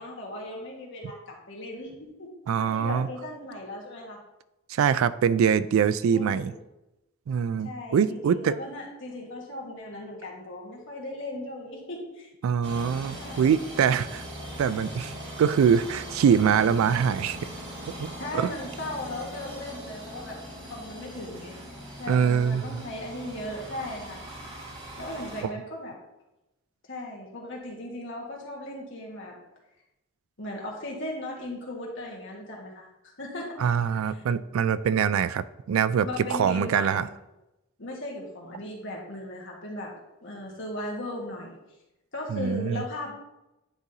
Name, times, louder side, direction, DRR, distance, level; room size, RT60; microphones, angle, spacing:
voice 1, 0.0-2.3 2.6-4.2 6.1-6.6 7.6-12.3 13.1-13.5 18.2-20.4 20.6-24.2 25.0-25.9 26.9-29.3 30.4-32.9 33.2-33.5 33.9-34.2 36.0-37.1 37.8-39.9 40.2-41.6 42.1-43.1, left 1 dB, 65° left, -2 dB, 1.6 m, -37 dB
voice 2, 2.5-3.1 4.7-6.5 7.3-8.5 12.4-14.2 14.6-17.4 18.0-18.5 22.1-22.8 25.4-25.5 33.6-37.1 42.3-42.8, right 7 dB, 75° right, 15 dB, 0.3 m, -24 dB
sound 1, 12.6-25.4, right 1 dB, 55° right, 1.8 m, -40 dB
9.8 x 3.9 x 2.8 m, 0.94 s
head